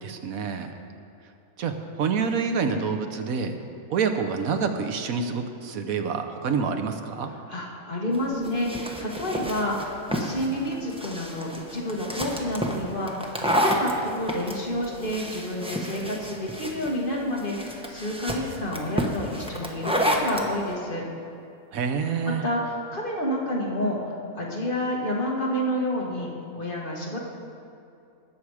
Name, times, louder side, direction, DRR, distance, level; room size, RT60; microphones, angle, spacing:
voice 1, 0.0-0.7 1.6-3.6 3.9-7.3 21.7-22.4, right 5 dB, 75° right, 7 dB, 1.2 m, -27 dB
voice 2, 7.5-21.1 22.3-27.2, left 1 dB, 35° left, -3 dB, 1.8 m, -29 dB
sound 1, 8.1-20.5, equal, 5° right, 0.9 m, -30 dB
19.0 x 7.2 x 4.8 m, 2.6 s
omnidirectional pair, 1.5 m